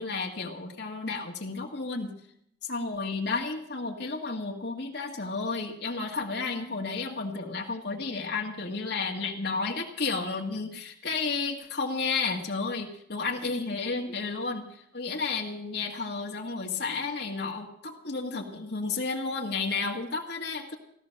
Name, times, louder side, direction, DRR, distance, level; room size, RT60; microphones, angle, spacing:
voice 1, 0.0-2.1 2.6-20.8, left 4 dB, 65° left, 1 dB, 1.7 m, -32 dB
16.0 x 12.5 x 6.4 m, 0.71 s
head